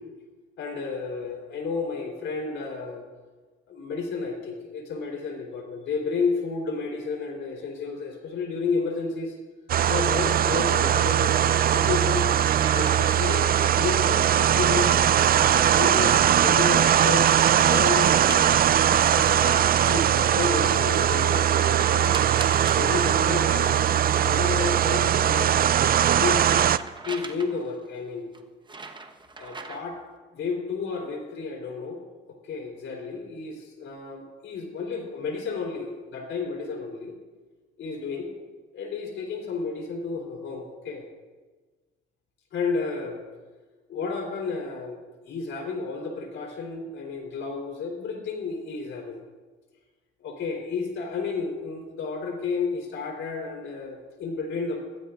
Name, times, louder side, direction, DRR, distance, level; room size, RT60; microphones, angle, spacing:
voice 1, 0.6-3.1 3.7-9.3 9.9-12.3 12.7-14.9 15.5-18.4 19.1-22.2 22.6-23.8 24.2-25.8 26.2-26.5 27.0-28.3 29.4-30.0 30.3-32.0 32.3-37.2 37.8-38.3 38.7-41.1 42.5-43.2 43.9-49.2 50.2-54.8, left 4 dB, 75° left, 2 dB, 3.9 m, -32 dB
sound 1, 9.7-26.8, right 10 dB, 50° right, 0.5 m, -20 dB
sound 2, 11.1-11.4 12.1-13.7 16.5-17.4 18.1-19.8 21.1-22.9 24.9-27.8 28.3-30.0, right 3 dB, 25° right, 1.2 m, -41 dB
25.5 x 15.5 x 2.5 m, 1.4 s
cardioid pair, 90°, 20 cm